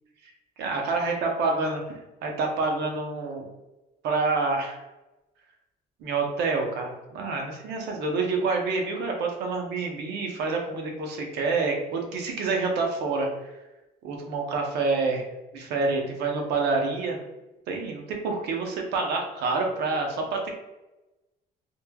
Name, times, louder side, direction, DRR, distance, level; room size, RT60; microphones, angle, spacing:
voice 1, 0.6-1.8 2.2-3.5 4.0-4.8 6.0-13.5 14.0-15.3 15.5-17.2 17.7-20.5, right 3 dB, 80° right, 2 dB, 0.6 m, -27 dB
2.9 x 2.2 x 2.2 m, 1.0 s
cardioid pair, 110°, 17 cm